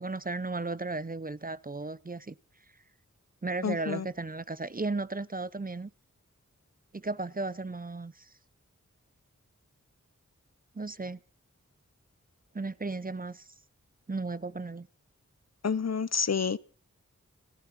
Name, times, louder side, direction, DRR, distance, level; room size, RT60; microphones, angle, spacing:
voice 1, 0.0-2.3 3.4-5.9 6.9-8.3 10.7-11.2 12.5-13.4 14.1-14.9, right 3 dB, 30° right, 0.7 m, -35 dB
voice 2, 3.6-4.0 15.6-16.6, left 6 dB, 60° left, 0.8 m, -29 dB
30.0 x 11.0 x 4.3 m
wide cardioid pair, 70°, 30 cm